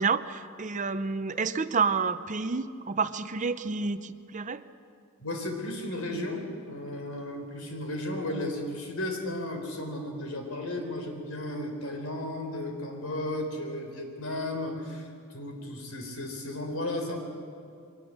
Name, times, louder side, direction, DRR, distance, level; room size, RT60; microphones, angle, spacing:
voice 1, 0.0-4.6, right 5 dB, 35° right, 12 dB, 0.7 m, -29 dB
voice 2, 5.2-17.2, left 1 dB, 85° left, 4 dB, 4.0 m, -34 dB
23.5 x 19.0 x 7.7 m, 2.4 s
head